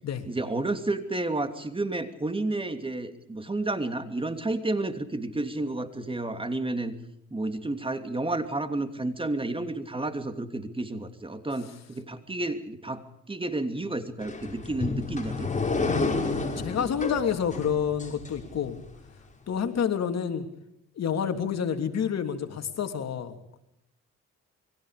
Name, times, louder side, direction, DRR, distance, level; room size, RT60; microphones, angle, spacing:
voice 1, 0.3-6.9 7.3-15.5, right 2 dB, 15° right, 8 dB, 2.9 m, -31 dB
sound 1, 14.2-18.9, left 3 dB, 25° left, 5.7 m, -30 dB
voice 2, 15.9-18.8 19.5-20.5 21.0-23.3, left 7 dB, 60° left, 6 dB, 3.2 m, -29 dB
28.5 x 23.0 x 5.1 m, 0.80 s
cardioid pair, 90°, 30 cm